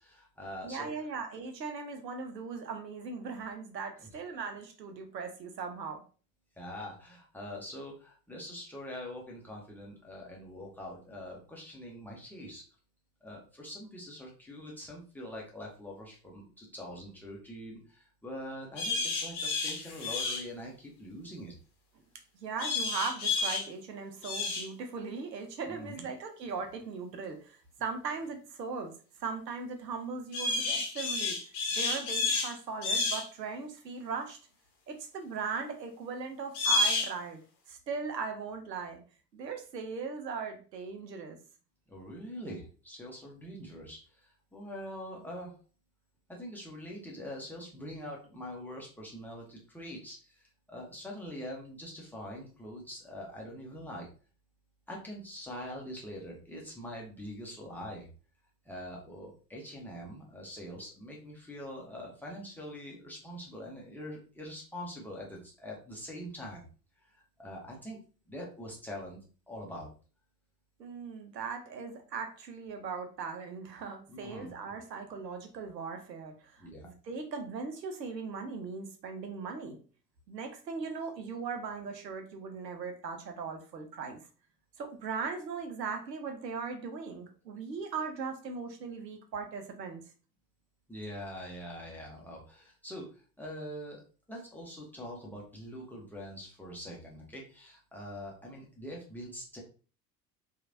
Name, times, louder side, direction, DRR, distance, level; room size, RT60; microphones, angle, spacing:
voice 1, 0.0-0.9 4.0-4.1 6.6-12.6 13.2-21.5 25.7-26.1 41.9-45.6 46.3-54.1 54.9-58.1 58.6-66.6 67.0-68.0 68.3-69.2 69.5-69.9 74.1-74.5 76.6-76.9 90.9-94.0 94.3-99.6, equal, 5° left, -3 dB, 0.7 m, -44 dB
voice 2, 0.6-6.0 22.3-28.9 29.2-31.4 31.7-34.4 34.9-39.0 39.3-41.4 70.8-79.8 80.3-84.2 84.8-90.0, right 5 dB, 80° right, 5 dB, 0.7 m, -39 dB
sound 1, 18.8-20.5 22.6-23.7 24.2-24.7 30.3-32.5 32.8-33.3 36.5-37.1, left 3 dB, 35° left, 0.8 m, -30 dB
2.9 x 2.4 x 2.5 m, 0.38 s
figure-of-eight pair, 70°, 49 cm